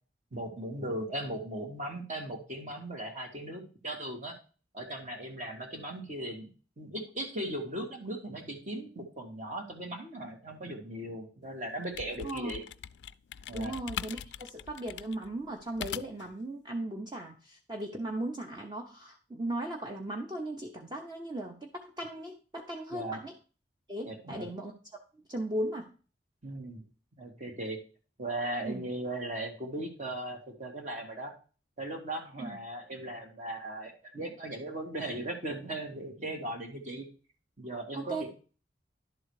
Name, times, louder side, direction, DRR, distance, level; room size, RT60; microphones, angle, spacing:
voice 1, 0.3-4.4 4.7-6.5 6.8-12.6 13.5-13.8 22.9-23.2 24.0-24.5 26.4-26.8 27.2-27.8 28.2-31.3 31.8-37.1 37.6-38.3, right 1 dB, 45° right, 1 dB, 2.0 m, -38 dB
sound 1, 11.7-16.3, left 9 dB, 75° left, 0.3 m, -42 dB
voice 2, 12.2-12.5 13.5-23.3 23.9-24.7 25.3-25.9 28.6-28.9 32.4-32.6 37.9-38.3, right 1 dB, 25° right, 2 dB, 0.8 m, -37 dB
11.0 x 3.9 x 4.7 m, 0.37 s
head